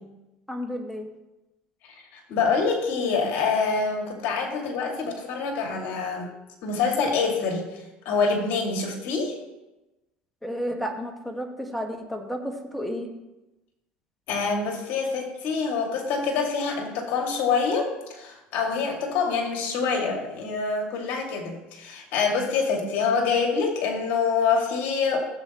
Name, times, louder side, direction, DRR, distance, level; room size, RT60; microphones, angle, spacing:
voice 1, 0.5-1.1 10.4-13.1, equal, 5° left, 3 dB, 1.7 m, -32 dB
voice 2, 1.8-6.3 6.6-9.4 14.3-25.2, left 5 dB, 65° left, 1 dB, 2.2 m, -26 dB
15.5 x 7.9 x 3.0 m, 1.0 s
supercardioid pair, 105°, 4 cm